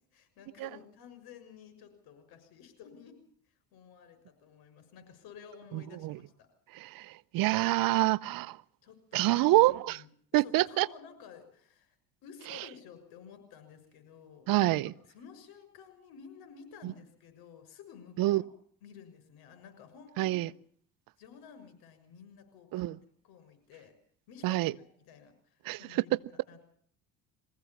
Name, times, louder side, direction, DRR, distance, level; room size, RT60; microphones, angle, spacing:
voice 1, 0.1-3.2 3.5-6.5 8.8-9.6 9.9-10.0 10.3-11.9 12.2-14.7 15.1-18.5 18.8-20.4 21.2-22.8 23.2-23.9 24.3-26.7, left 7 dB, 75° left, 6.5 m, -52 dB
voice 2, 5.7-6.2 6.7-8.6 9.1-10.0 10.3-10.9 12.5-12.6 14.5-14.9 16.8-16.9 18.2-18.4 20.2-20.5 22.7-22.9 24.4-24.7 25.6-26.2, right 18 dB, 65° right, 0.8 m, -27 dB
23.0 x 16.0 x 7.3 m
supercardioid pair, 90°, 38 cm